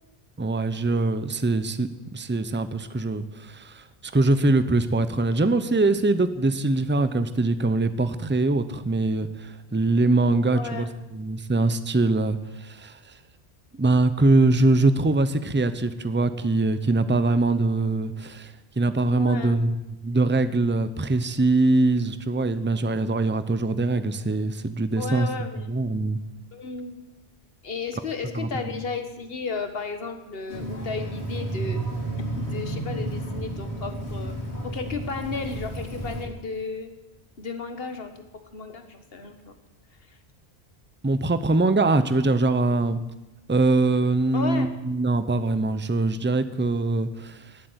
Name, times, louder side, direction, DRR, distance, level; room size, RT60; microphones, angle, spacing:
voice 1, 0.4-13.0 13.7-26.2 28.3-28.7 41.0-43.0 43.5-47.6, right 2 dB, 15° right, 12 dB, 0.6 m, -23 dB
voice 2, 10.4-10.9 19.2-19.6 25.0-25.7 26.5-27.0 27.6-31.8 32.4-34.3 34.6-36.9 37.4-38.1 38.5-39.5 40.1-40.2 44.3-44.7, left 4 dB, 65° left, 7 dB, 1.7 m, -33 dB
sound 1, 30.5-36.2, right 1 dB, 85° left, 3.4 m, -32 dB
18.5 x 8.1 x 8.1 m, 0.98 s
omnidirectional pair, 1.1 m